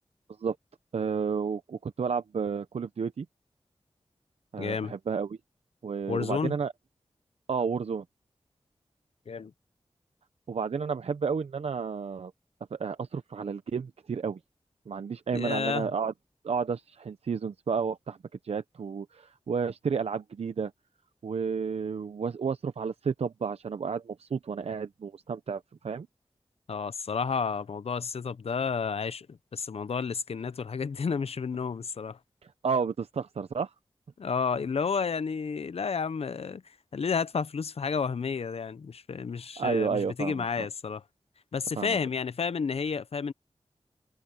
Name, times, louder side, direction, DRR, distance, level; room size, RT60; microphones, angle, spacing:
voice 1, 0.9-3.3 4.5-5.4 5.8-6.7 7.5-8.0 10.5-12.3 12.7-14.4 14.9-16.1 16.4-18.2 18.4-20.7 21.2-26.1 32.4-33.7 39.6-40.4 41.8-42.0, right 6 dB, 80° right, 0.7 m, -31 dB
voice 2, 4.6-4.9 6.1-6.5 9.3-9.5 15.3-15.9 26.7-32.2 34.2-41.0 41.5-43.3, left 5 dB, 75° left, 0.7 m, -31 dB
wide cardioid pair, 75°, 10 cm